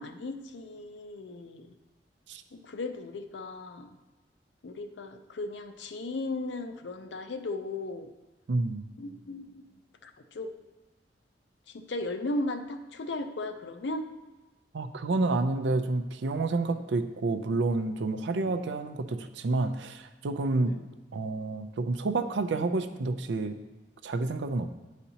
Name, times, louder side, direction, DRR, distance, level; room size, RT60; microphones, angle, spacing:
voice 1, 0.0-1.7 2.5-4.0 4.6-8.1 9.0-9.6 10.0-10.5 11.7-14.1 18.3-18.5 20.6-20.9, left 2 dB, 75° left, 7 dB, 0.5 m, -36 dB
voice 2, 8.5-8.8 14.7-20.8 21.1-23.6 24.0-24.7, right 3 dB, 80° right, 9 dB, 0.5 m, -29 dB
9.9 x 4.1 x 2.8 m, 1.2 s
head